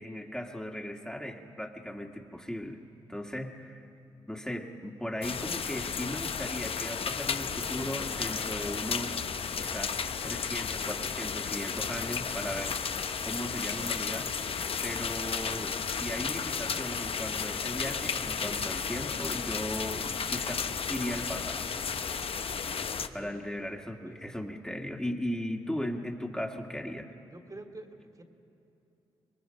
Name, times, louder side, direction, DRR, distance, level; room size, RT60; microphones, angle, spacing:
voice 1, 0.0-2.8 3.1-3.9 4.3-9.2 9.6-10.0 10.2-14.6 14.8-21.7 23.1-27.1, equal, 5° left, 1 dB, 2.0 m, -37 dB
sound 1, 5.2-23.1, left 6 dB, 60° left, 1.0 m, -33 dB
voice 2, 24.0-24.4 27.3-28.2, right 2 dB, 35° right, 5 dB, 2.6 m, -47 dB
25.0 x 22.5 x 5.3 m, 2.9 s
supercardioid pair, 40°, 11 cm